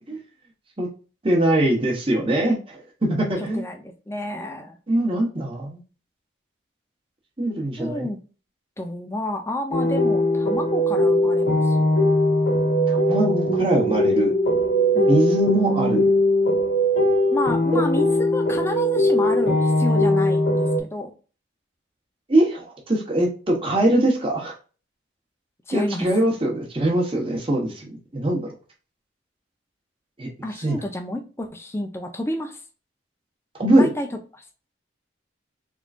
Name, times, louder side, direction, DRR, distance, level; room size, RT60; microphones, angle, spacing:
voice 1, 1.2-3.6 4.9-5.8 7.4-8.1 12.9-14.3 15.1-16.0 17.7-17.8 22.3-24.5 25.7-27.9 28.1-28.5 30.2-30.3 30.6-30.8 33.6-33.9, right 1 dB, 25° right, -1 dB, 1.0 m, -22 dB
voice 2, 3.4-4.8 7.8-8.2 8.8-11.9 14.9-15.2 17.3-21.1 25.7-26.1 30.4-32.6 33.8-34.4, left 1 dB, 15° left, 5 dB, 0.6 m, -30 dB
sound 1, 9.7-20.8, left 1 dB, 85° left, 1.7 m, -20 dB
3.8 x 3.6 x 2.4 m, 0.36 s
head